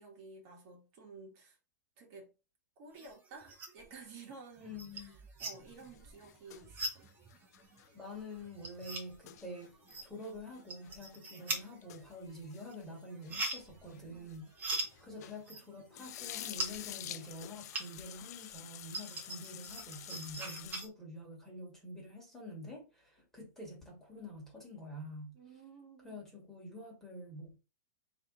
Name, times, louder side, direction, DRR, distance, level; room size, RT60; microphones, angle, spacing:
voice 1, 0.0-1.6 2.0-2.3 2.8-5.1 5.4-7.1 14.1-14.3 25.3-26.2, right 4 dB, 45° right, 1.6 m, -53 dB
sound 1, 3.0-3.9 4.3-18.2 18.5-20.9, right 2 dB, 20° right, 1.1 m, -42 dB
voice 2, 4.6-5.1 7.9-9.7 10.0-14.5 15.0-25.4 26.0-27.6, left 1 dB, 5° left, 1.7 m, -47 dB
sound 2, 5.7-15.5 15.8-20.8, left 12 dB, 65° left, 0.4 m, -49 dB
4.2 x 3.0 x 3.7 m
supercardioid pair, 145°, 9 cm